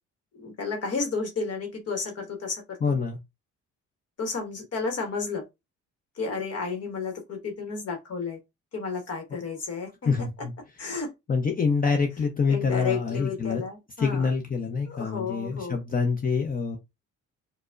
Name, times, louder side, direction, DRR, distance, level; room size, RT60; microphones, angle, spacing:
voice 1, 0.3-3.0 4.2-5.4 6.2-8.4 8.7-9.9 10.2-10.3 10.8-11.1 12.5-14.3 14.9-15.8, left 4 dB, 55° left, 1.0 m, -32 dB
voice 2, 2.8-3.2 10.0-10.5 11.3-13.6 14.0-16.8, left 5 dB, 30° left, 0.6 m, -26 dB
4.6 x 2.1 x 2.4 m
cardioid pair, 90°, 30 cm